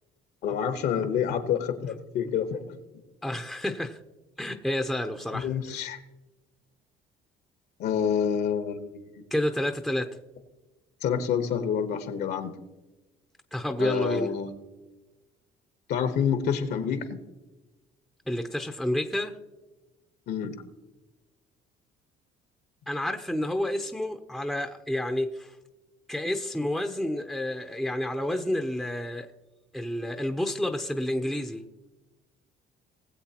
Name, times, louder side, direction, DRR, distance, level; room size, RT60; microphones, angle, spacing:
voice 1, 0.4-2.8 5.3-6.0 7.8-8.8 11.0-12.5 13.8-14.5 15.9-17.2 20.3-20.6, left 7 dB, 75° left, 8 dB, 1.2 m, -28 dB
voice 2, 3.2-4.0 4.4-5.5 9.3-10.1 13.5-14.3 18.3-19.4 22.9-25.5 26.1-29.3 29.7-31.6, left 1 dB, ahead, 6 dB, 0.6 m, -29 dB
20.0 x 7.7 x 2.9 m, 1.1 s
cardioid pair, 110°, 17 cm